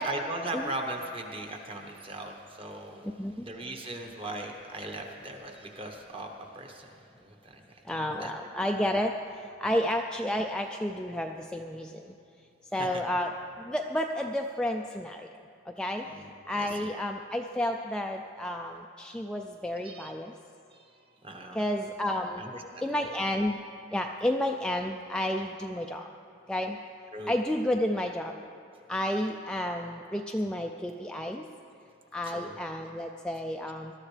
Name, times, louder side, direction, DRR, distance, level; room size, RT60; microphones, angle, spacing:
voice 1, 0.0-3.1 3.4-6.3 6.5-6.9 7.2-7.6 8.2-8.3 12.8-13.0 16.1-16.7 19.8-20.1 21.2-21.6 22.4-22.6 27.1-27.3 32.3-32.6, right 2 dB, 30° right, 3 dB, 1.1 m, -38 dB
voice 2, 7.9-9.1 9.6-12.0 12.7-13.3 13.6-15.3 15.8-16.1 16.5-20.3 21.5-22.4 22.8-23.6 23.9-26.1 26.5-26.8 27.3-28.4 28.9-31.4 32.1-33.9, left 1 dB, 5° left, 2 dB, 0.3 m, -31 dB
20.0 x 13.0 x 3.3 m, 2.5 s
head